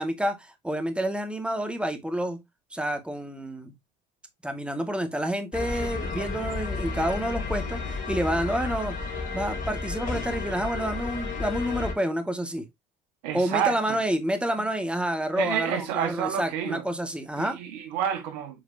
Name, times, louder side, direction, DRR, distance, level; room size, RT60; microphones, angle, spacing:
voice 1, 0.0-2.4 2.7-3.7 4.4-9.0 9.3-12.6 13.3-17.6, right 1 dB, 5° right, 2.0 m, -29 dB
sound 1, 5.5-11.9, left 4 dB, 40° left, 3.8 m, -32 dB
voice 2, 13.2-14.0 15.3-16.8 17.4-18.6, right 9 dB, 80° right, 1.7 m, -29 dB
8.4 x 4.8 x 2.8 m
hypercardioid pair, 70°, 21 cm